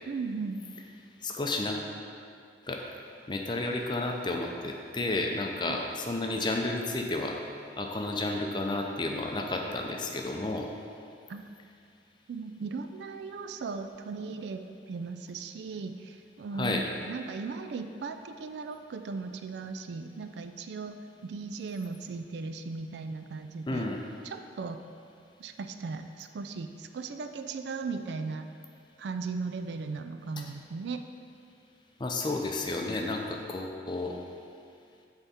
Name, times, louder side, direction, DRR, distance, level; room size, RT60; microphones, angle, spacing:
voice 1, 0.1-0.6 5.7-5.8 11.3-11.4 12.3-21.0 21.2-23.9 24.2-24.8 25.4-28.5 29.0-31.0, right 4 dB, 70° right, 7 dB, 0.3 m, -37 dB
voice 2, 1.2-1.8 2.6-2.8 3.3-7.4 7.8-10.7 16.6-16.8 23.7-24.0 32.0-34.2, left 2 dB, 25° left, 2 dB, 0.5 m, -31 dB
8.9 x 3.5 x 4.2 m, 2.4 s
head